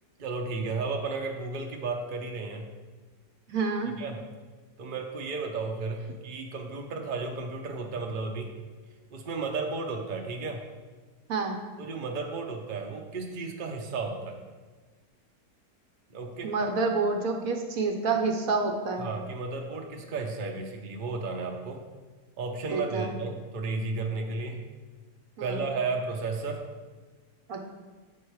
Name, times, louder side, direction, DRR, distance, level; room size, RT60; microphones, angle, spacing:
voice 1, 0.2-2.6 4.0-4.2 4.8-8.5 9.1-10.6 11.8-14.4 16.1-16.5 19.0-21.8 22.4-24.6 25.4-26.6, right 3 dB, 45° right, 2 dB, 0.7 m, -33 dB
voice 2, 3.5-3.9 11.3-11.6 16.4-19.1 22.7-23.1 25.4-25.6 27.5-27.6, right 4 dB, 65° right, 4 dB, 1.1 m, -28 dB
8.6 x 4.6 x 4.7 m, 1.3 s
omnidirectional pair, 1.7 m